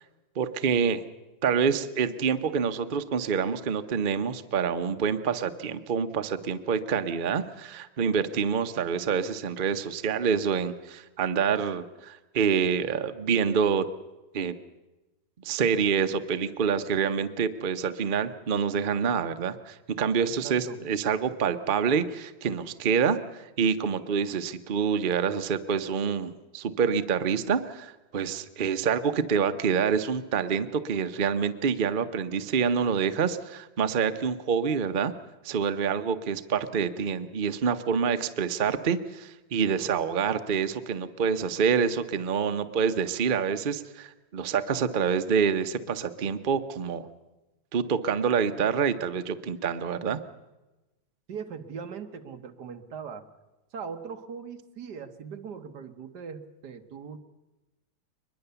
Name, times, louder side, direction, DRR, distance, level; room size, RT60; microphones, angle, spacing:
voice 1, 0.4-1.0 1.4-13.8 14.3-14.5 15.4-35.1 35.4-47.1 47.7-50.2, right 6 dB, 75° right, 9 dB, 0.4 m, -27 dB
voice 2, 20.2-20.8 51.3-53.2 53.7-57.2, right 6 dB, 55° right, 7 dB, 1.7 m, -40 dB
23.0 x 21.0 x 6.9 m, 1.1 s
omnidirectional pair, 2.3 m